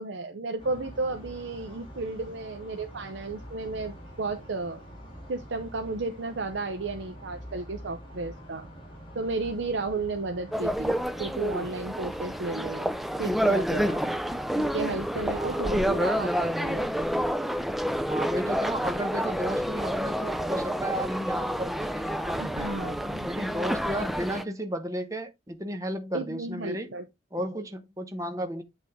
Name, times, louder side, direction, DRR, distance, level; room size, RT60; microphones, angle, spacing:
voice 1, 0.0-4.8 5.3-8.7 9.1-12.9 13.2-14.1 14.6-16.9 22.4-23.3 26.1-27.1 27.4-27.5, right 3 dB, 70° right, 0.6 m, -33 dB
sound 1, 0.6-16.6, equal, 30° left, 3.0 m, -46 dB
sound 2, 10.5-24.4, equal, ahead, 0.3 m, -29 dB
voice 2, 15.3-15.9 18.1-22.8 23.3-26.9 27.3-28.6, right 1 dB, 15° right, 0.9 m, -33 dB
8.4 x 3.5 x 3.5 m
head